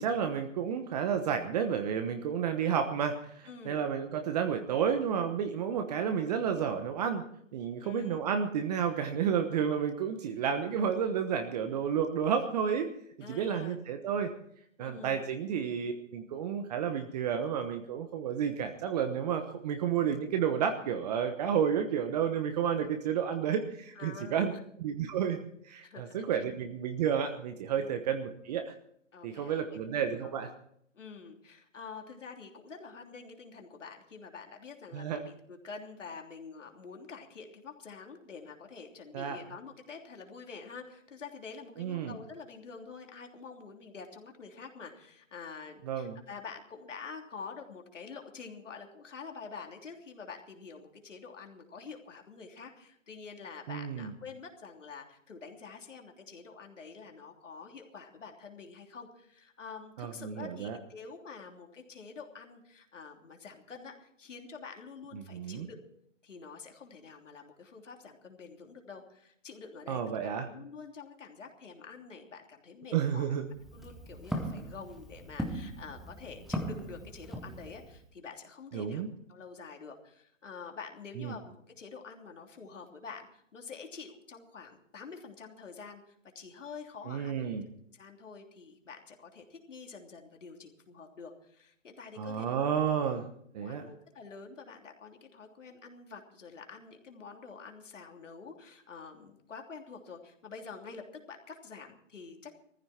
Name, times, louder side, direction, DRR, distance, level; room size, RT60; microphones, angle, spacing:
voice 1, 0.0-7.2 7.5-12.9 13.3-14.3 14.8-24.5 24.8-25.4 25.6-28.7 29.2-30.5 34.9-35.2 39.1-39.4 41.8-42.1 45.9-46.2 53.7-54.1 60.0-60.8 65.1-65.7 69.9-70.5 72.9-73.4 78.7-79.1 81.2-81.3 87.1-87.7 92.2-93.2 93.5-93.8, right 8 dB, 30° right, 7 dB, 1.1 m, -31 dB
voice 2, 3.5-3.9 7.8-8.2 13.2-13.8 14.8-15.3 23.9-24.6 25.8-26.4 27.7-27.9 29.1-30.3 30.9-65.8 66.2-73.3 73.7-87.4 87.9-92.5 93.6-102.5, left 5 dB, 75° left, 3 dB, 3.2 m, -47 dB
Walk footsteps, 73.5-78.0, equal, ahead, 0.8 m, -39 dB
17.5 x 14.5 x 4.4 m, 0.68 s
hypercardioid pair, 145°, 37 cm